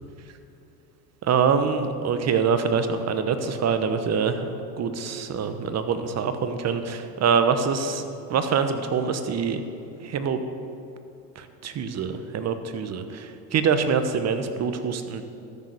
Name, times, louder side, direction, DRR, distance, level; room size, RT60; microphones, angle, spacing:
voice 1, 1.2-8.0 8.3-9.6 10.0-10.4 11.4-15.2, right 6 dB, 35° right, 9 dB, 1.1 m, -25 dB
13.5 x 6.5 x 6.5 m, 2.8 s
hypercardioid pair, 85°, 46 cm